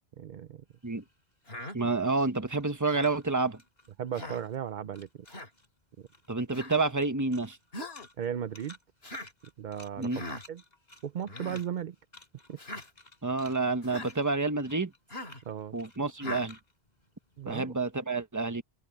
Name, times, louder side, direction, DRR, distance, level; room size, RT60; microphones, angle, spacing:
voice 1, 0.2-0.6 4.0-5.1 6.0-6.1 8.2-8.8 9.6-10.6 11.0-12.0 12.5-12.6 15.5-15.8 17.4-17.7, right 9 dB, 55° right, 0.7 m, -36 dB
sound 1, 0.7-4.7 4.9-5.7 6.0-17.9, left 2 dB, 40° left, 5.7 m, -57 dB
Human voice, 1.5-1.8 2.9-3.2 4.1-4.4 5.3-5.5 6.5-6.8 7.7-8.1 9.0-9.3 10.1-10.4 11.3-11.6 12.6-12.9 13.8-14.1 15.1-15.4 16.2-16.5, left 1 dB, 70° left, 3.0 m, -40 dB
voice 2, 1.7-3.6 6.3-7.6 10.0-10.3 13.2-14.9 15.7-16.6 17.5-18.6, right 3 dB, 15° right, 1.2 m, -29 dB
omnidirectional pair, 1.1 m